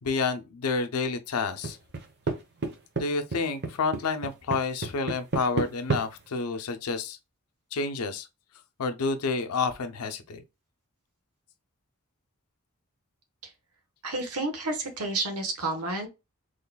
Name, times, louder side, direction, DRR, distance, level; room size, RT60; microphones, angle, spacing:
voice 1, 0.0-1.8 3.0-7.2 7.7-8.3 8.8-10.4, left 4 dB, 85° left, 0.6 m, -29 dB
sound 1, 1.6-2.4 2.6-3.0 3.3-6.0, right 3 dB, 50° right, 0.9 m, -28 dB
voice 2, 14.0-16.1, right 2 dB, 80° right, 1.1 m, -30 dB
3.9 x 3.1 x 2.2 m
head